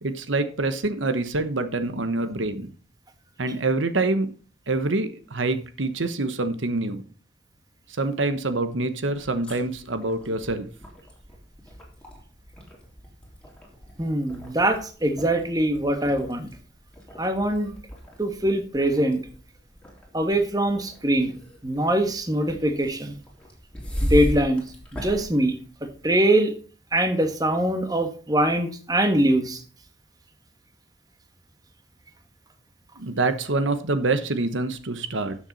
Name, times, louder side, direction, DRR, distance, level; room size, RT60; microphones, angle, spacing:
voice 1, 0.0-2.7 3.4-4.3 4.7-7.0 8.0-10.7 33.0-35.4, right 2 dB, 80° right, 10 dB, 1.2 m, -26 dB
sound 1, 9.1-26.3, equal, 5° left, 3.6 m, -37 dB
voice 2, 14.0-16.5 17.2-17.7 18.2-19.2 20.1-21.4 21.6-23.2 24.0-24.6 24.9-25.5 26.0-26.5 26.9-29.6, right 1 dB, 20° right, 6 dB, 1.4 m, -23 dB
13.0 x 7.3 x 4.1 m, 0.39 s
head